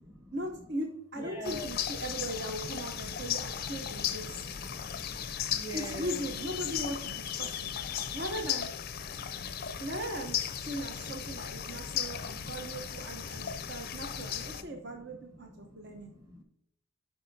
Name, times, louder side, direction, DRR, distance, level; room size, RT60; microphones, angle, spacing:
voice 1, 0.3-4.4 5.7-7.7 8.1-8.7 9.8-16.1, right 1 dB, 50° right, 3 dB, 0.8 m, -39 dB
voice 2, 1.1-1.7 3.1-3.3 3.9-4.2 4.4-6.3 7.6-8.0 9.1-9.6 10.9-11.0 11.6-12.3 12.7-12.8 13.1-14.0 14.6-16.4, right 1 dB, 15° right, 3 dB, 1.1 m, -48 dB
sound 1, 1.4-14.6, left 9 dB, 45° left, 0.5 m, -36 dB
12.0 x 4.8 x 2.7 m, 0.76 s
head